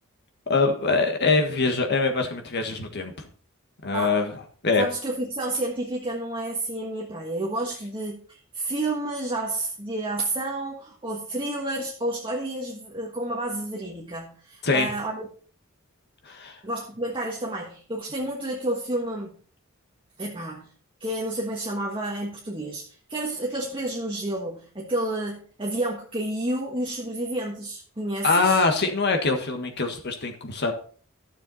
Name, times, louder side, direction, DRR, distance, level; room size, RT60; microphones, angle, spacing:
voice 1, 0.5-3.1 3.8-4.3 4.6-4.8 14.6-14.9 16.2-16.6 28.2-30.7, left 3 dB, 55° left, 4 dB, 1.6 m, -23 dB
voice 2, 4.8-15.3 16.6-19.4 20.2-20.7 21.0-22.8 23.1-28.6, right 1 dB, 25° right, -2 dB, 1.4 m, -30 dB
12.5 x 7.0 x 4.1 m, 0.43 s
head